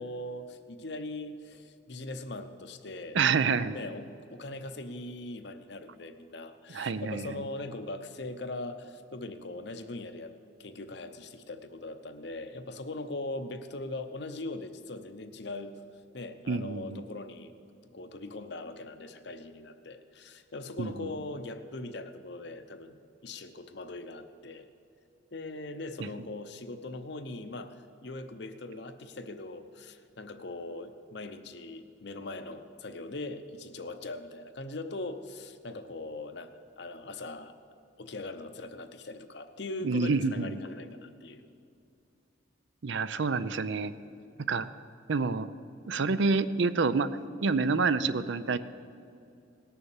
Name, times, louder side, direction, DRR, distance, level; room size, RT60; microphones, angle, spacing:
voice 1, 0.0-3.2 3.7-10.3 10.6-15.7 16.1-17.5 17.9-23.0 23.2-24.7 25.3-37.5 38.0-41.4, left 2 dB, 60° left, 8 dB, 0.8 m, -40 dB
voice 2, 3.1-3.8 6.7-7.4 16.5-17.0 20.8-21.1 39.8-40.6 42.8-43.9 44.5-44.7 45.1-45.5 45.9-47.1 47.4-48.6, right 4 dB, 70° right, 13 dB, 0.5 m, -27 dB
18.5 x 6.9 x 7.2 m, 2.5 s
head